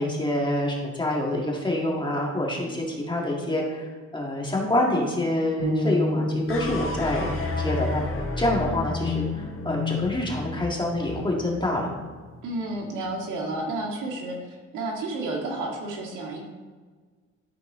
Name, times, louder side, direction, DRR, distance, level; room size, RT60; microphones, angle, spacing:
voice 1, 0.0-7.3 7.6-8.0 8.4-11.9, left 1 dB, 15° left, -2 dB, 2.1 m, -26 dB
sound 1, 5.6-9.7, left 1 dB, 65° right, 2.5 m, -31 dB
sound 2, 6.5-12.9, left 4 dB, 45° left, 1.4 m, -32 dB
voice 2, 12.4-16.4, right 2 dB, 85° right, 0 dB, 1.9 m, -31 dB
12.5 x 4.7 x 3.9 m, 1.4 s
cardioid pair, 90°, 30 cm